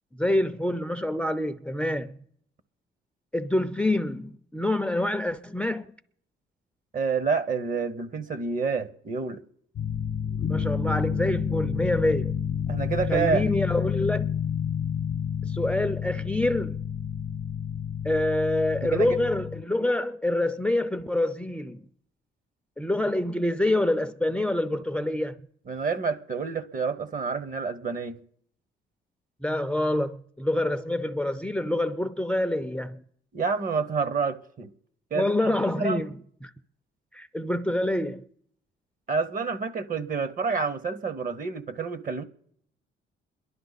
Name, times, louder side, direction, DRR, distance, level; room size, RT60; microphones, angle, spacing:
voice 1, 0.1-2.2 3.3-5.9 10.4-12.4 13.1-14.3 15.4-16.8 18.0-21.8 22.8-25.4 29.4-33.0 35.1-36.5 37.1-38.3, left 1 dB, 5° left, 0.5 m, -26 dB
voice 2, 6.9-9.4 12.7-13.5 18.8-19.2 25.7-28.2 33.3-34.7 35.1-36.0 39.1-42.2, right 5 dB, 45° right, 1.0 m, -28 dB
hell bell, 9.8-19.6, left 7 dB, 65° left, 0.8 m, -29 dB
27.0 x 11.5 x 4.1 m
cardioid pair, 90°, 20 cm